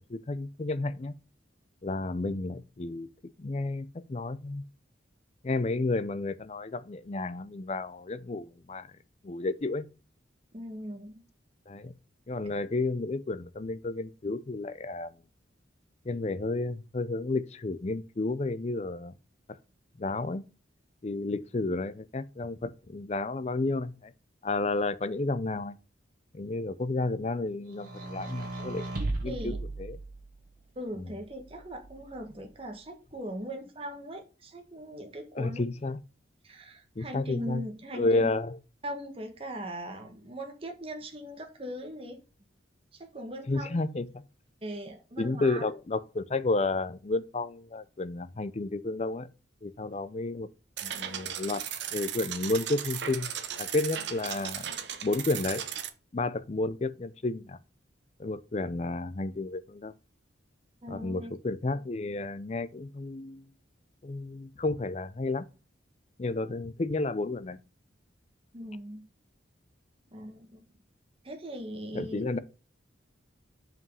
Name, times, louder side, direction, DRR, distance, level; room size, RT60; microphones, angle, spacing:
voice 1, 0.1-1.1 1.8-3.1 3.4-4.6 5.4-8.9 9.2-9.9 11.7-11.9 12.3-15.1 16.1-19.1 20.0-20.4 21.0-24.1 24.4-25.8 26.3-28.9 29.2-30.0 31.0-31.1 35.4-36.0 37.0-37.6 37.9-38.6 43.5-44.2 45.2-49.3 49.6-50.5 50.8-51.6 51.9-53.3 53.6-54.7 55.0-55.6 56.1-57.6 58.2-59.9 60.9-63.4 64.0-65.4 66.2-67.6 71.9-72.4, left 2 dB, 35° left, 0.5 m, -31 dB
voice 2, 10.5-11.1 29.2-29.6 30.7-35.6 36.4-38.3 38.8-42.2 42.9-43.8 44.6-45.6 60.8-61.3 68.5-69.0 70.1-70.6 71.2-72.2, equal, 30° right, 1.3 m, -40 dB
sound 1, 27.8-30.5 31.4-32.4, right 2 dB, 45° right, 1.9 m, -37 dB
sound 2, 50.8-55.9, right 9 dB, 65° right, 0.8 m, -36 dB
5.5 x 5.2 x 5.4 m
head